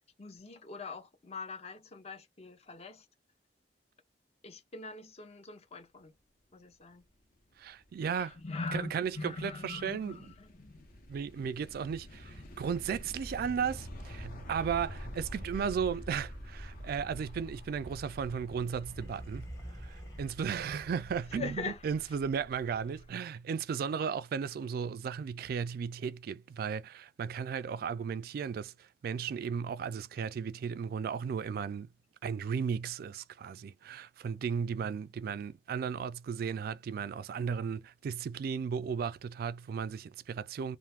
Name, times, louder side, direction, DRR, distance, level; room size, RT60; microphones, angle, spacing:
voice 1, 0.2-3.1 4.4-6.1 6.5-7.0 8.1-10.9 12.2-12.4 19.6-19.7 21.3-22.0, left 3 dB, 35° left, 0.6 m, -42 dB
sound 1, 7.6-23.1, equal, 55° left, 1.0 m, -47 dB
voice 2, 7.6-8.4 8.7-10.2 11.1-31.9 32.2-40.8, right 6 dB, 60° right, 0.3 m, -35 dB
sound 2, 17.6-21.8, equal, 20° left, 1.1 m, -49 dB
2.5 x 2.4 x 3.3 m
head